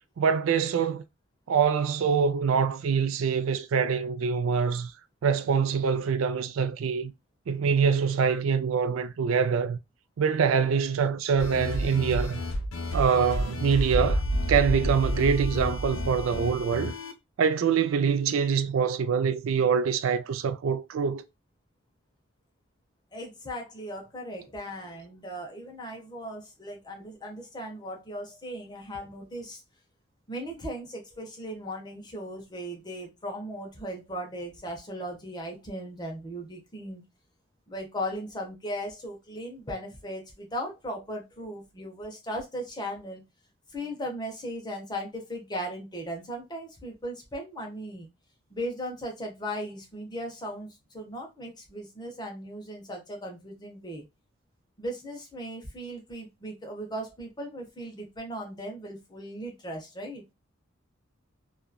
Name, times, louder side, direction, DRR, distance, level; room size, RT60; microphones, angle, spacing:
voice 1, 0.2-1.0 1.5-4.9 5.2-7.1 7.5-9.8 10.2-12.4 12.9-14.2 14.5-16.9 17.4-21.2, right 6 dB, 75° right, 0.4 m, -25 dB
sound 1, 11.4-17.1, equal, 75° left, 0.6 m, -30 dB
voice 2, 23.1-29.6 30.3-37.0 37.7-43.2 43.7-48.1 48.5-54.0 54.8-60.2, equal, 20° left, 0.7 m, -37 dB
2.9 x 2.4 x 2.2 m
head